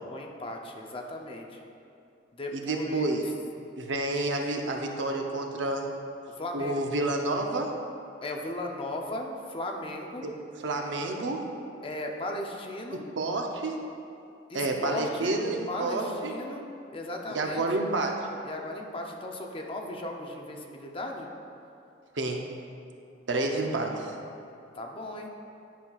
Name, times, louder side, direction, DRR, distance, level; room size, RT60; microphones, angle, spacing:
voice 1, 0.1-1.6 2.3-3.1 6.4-6.8 8.2-10.3 11.8-13.0 14.5-15.3 15.7-16.6 16.9-17.6 18.4-21.3 23.3-23.5 24.8-25.3, left 1 dB, 30° left, 2 dB, 0.5 m, -36 dB
voice 2, 2.5-3.3 3.8-5.9 6.5-7.7 10.2-10.3 10.6-11.5 13.2-13.8 14.5-16.3 17.3-18.2 22.2-22.4 23.3-24.1, right 2 dB, 75° right, 2 dB, 0.7 m, -29 dB
10.0 x 5.6 x 2.4 m, 2.6 s
head